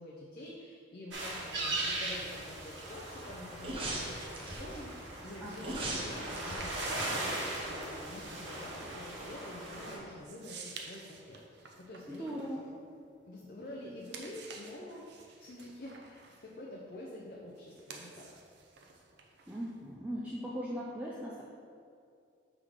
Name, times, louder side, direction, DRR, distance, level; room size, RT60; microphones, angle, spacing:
voice 1, 0.0-12.3 13.2-15.1 15.4-18.3, left 1 dB, 50° left, -3 dB, 0.6 m, -47 dB
sound 1, 1.1-10.0, right 2 dB, 80° right, 1.5 m, -39 dB
sound 2, 2.1-13.4 13.8-19.9, right 5 dB, 65° right, 0.7 m, -52 dB
sound 3, 3.6-4.8 5.6-8.1 8.4-8.5, right 2 dB, 30° right, 0.9 m, -40 dB
voice 2, 5.4-6.0 12.1-12.7 19.5-21.4, equal, 10° right, -6 dB, 0.5 m, -39 dB
6.3 x 3.7 x 5.0 m, 2.4 s
head